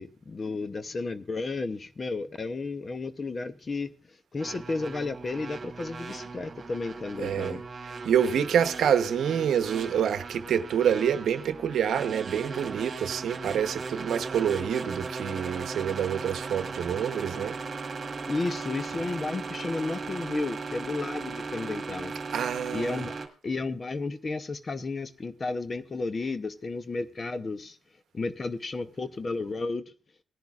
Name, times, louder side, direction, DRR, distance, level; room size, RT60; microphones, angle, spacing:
voice 1, 0.0-3.9 4.3-7.6 18.3-22.1 22.7-23.1 23.4-27.8 28.1-29.8, left 3 dB, 30° left, 0.8 m, -33 dB
sound 1, 4.4-23.3, right 4 dB, 40° right, 1.8 m, -37 dB
voice 2, 7.2-7.6 8.0-17.5 22.3-23.0, right 8 dB, 65° right, 0.9 m, -27 dB
19.0 x 10.5 x 2.4 m
cardioid pair, 90°, 0 cm